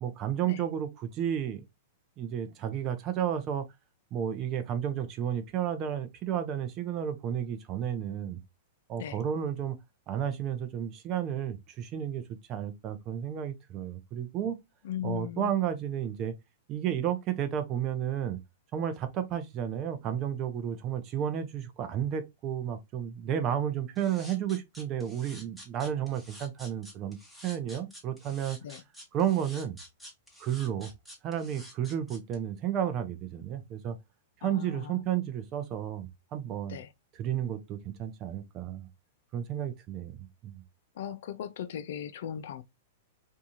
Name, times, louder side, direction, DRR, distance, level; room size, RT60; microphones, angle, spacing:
voice 1, 0.0-1.6 2.2-3.6 4.1-8.4 8.9-9.8 10.1-12.2 12.5-14.6 15.0-16.3 16.7-18.4 18.7-27.2 27.4-28.6 29.1-29.8 30.4-30.9 31.2-34.0 34.4-36.8 37.1-38.9 39.3-40.6, right 9 dB, 35° right, 0.6 m, -32 dB
voice 2, 14.8-15.5 28.6-28.8 34.4-35.0 36.7-36.9 41.0-42.6, left 10 dB, 65° left, 0.4 m, -38 dB
sound 1, 24.0-32.4, equal, ahead, 1.0 m, -49 dB
2.7 x 2.3 x 2.8 m
hypercardioid pair, 125°, 0 cm